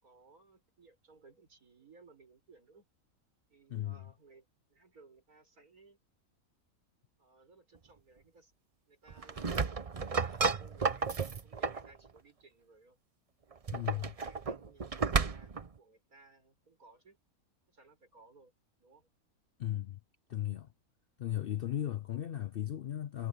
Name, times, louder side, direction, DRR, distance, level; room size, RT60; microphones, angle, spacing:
voice 1, 0.0-2.9 3.5-6.0 7.2-8.5 8.9-9.8 10.2-11.2 11.4-13.0 13.7-17.2 17.7-18.5 18.8-19.1, right 3 dB, 85° right, 6.4 m, -61 dB
sound 1, 9.1-11.9 13.5-15.7, right 4 dB, 30° right, 0.7 m, -33 dB
voice 2, 13.7-14.1 19.6-20.0 20.3-20.7 21.2-23.3, left 12 dB, 70° left, 0.5 m, -36 dB
omnidirectional pair, 1.5 m